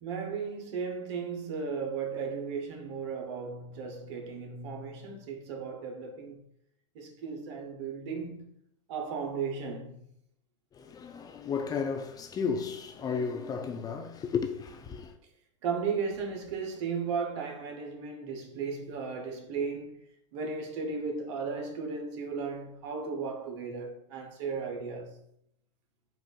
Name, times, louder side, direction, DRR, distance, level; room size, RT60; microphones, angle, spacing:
voice 1, 0.0-6.4 6.9-8.5 8.9-10.0 15.6-20.0 20.3-25.2, right 5 dB, 65° right, 0.8 m, -35 dB
voice 2, 10.8-15.1, left 6 dB, 25° left, 0.4 m, -33 dB
4.4 x 2.4 x 2.3 m
hypercardioid pair, 95°, 16 cm